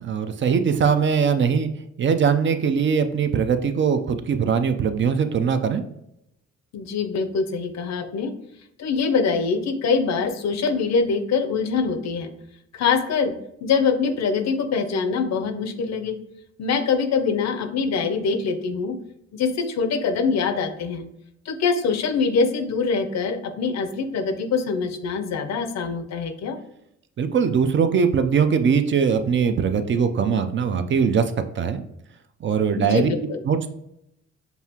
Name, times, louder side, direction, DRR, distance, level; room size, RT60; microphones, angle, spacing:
voice 1, 0.0-1.7 2.0-5.8 27.2-31.2 31.6-31.8 32.4-33.1 33.5-33.7, right 6 dB, 40° right, 8 dB, 0.4 m, -21 dB
voice 2, 6.7-8.3 8.8-12.3 12.7-13.3 13.6-16.2 16.6-19.0 19.3-21.1 21.5-26.6 32.8-33.4, left 5 dB, 60° left, 8 dB, 0.6 m, -24 dB
5.3 x 2.4 x 2.8 m, 0.78 s
cardioid pair, 90°, 30 cm